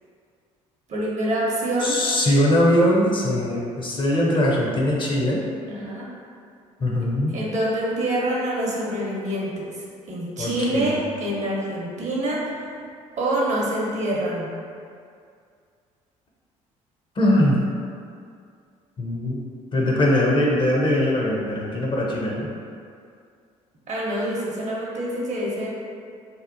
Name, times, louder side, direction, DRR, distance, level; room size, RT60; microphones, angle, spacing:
voice 1, 0.9-2.0 5.7-6.1 7.3-9.7 10.1-12.7 13.2-14.5 23.9-25.7, right 1 dB, 45° right, -4 dB, 0.7 m, -26 dB
voice 2, 1.8-5.4 6.8-7.3 10.4-10.9 17.2-17.6 19.0-19.4 19.7-22.5, left 1 dB, 30° left, -3 dB, 0.5 m, -21 dB
2.7 x 2.0 x 2.6 m, 2.3 s
hypercardioid pair, 55°, 17 cm